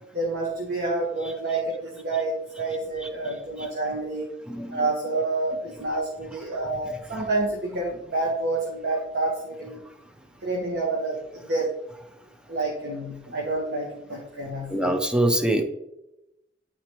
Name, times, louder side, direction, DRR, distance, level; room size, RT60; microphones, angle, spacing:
voice 1, 0.1-4.3 4.7-9.8 10.4-11.7 12.5-14.9, right 2 dB, 65° right, -2 dB, 1.3 m, -28 dB
voice 2, 4.5-4.8 14.7-15.6, right 1 dB, 5° right, 5 dB, 0.6 m, -23 dB
9.9 x 4.1 x 3.1 m, 0.87 s
head